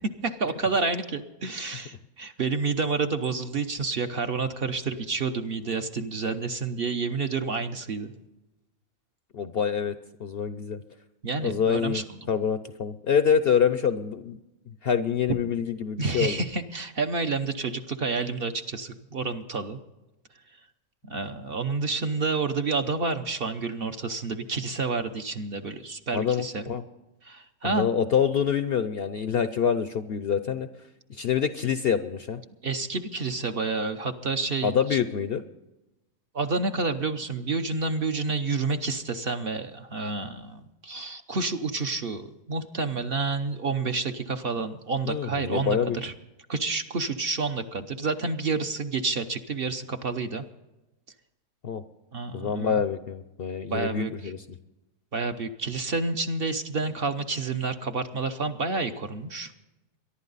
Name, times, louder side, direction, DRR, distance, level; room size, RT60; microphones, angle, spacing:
voice 1, 0.2-8.1 11.2-12.3 16.0-19.8 21.0-26.7 27.2-27.9 32.6-35.0 36.3-46.1 46.5-50.4 52.1-52.8 53.7-54.3 55.1-59.5, right 4 dB, 50° right, 7 dB, 0.9 m, -29 dB
voice 2, 9.3-9.9 10.2-10.8 11.4-14.4 14.7-16.4 26.1-26.8 27.6-30.7 31.1-32.4 34.6-35.4 45.1-46.0 51.6-51.8 52.3-54.4, left 7 dB, 55° left, 11 dB, 0.7 m, -26 dB
23.0 x 11.5 x 4.0 m, 0.99 s
omnidirectional pair, 1.5 m